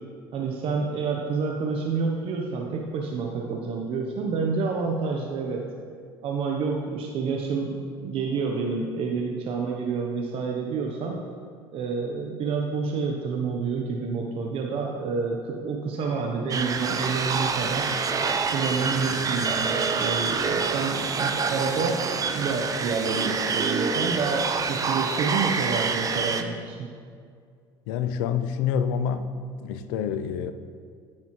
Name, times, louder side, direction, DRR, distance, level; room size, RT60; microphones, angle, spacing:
voice 1, 0.3-5.7 6.2-11.3 11.7-17.9 18.5-26.9, right 4 dB, 55° right, 1 dB, 0.9 m, -28 dB
sound 1, 16.5-26.4, right 5 dB, 30° right, 0.7 m, -27 dB
voice 2, 27.9-29.3 29.6-30.5, left 8 dB, 85° left, 10 dB, 0.5 m, -27 dB
9.4 x 8.8 x 3.2 m, 2.1 s
supercardioid pair, 95°, 11 cm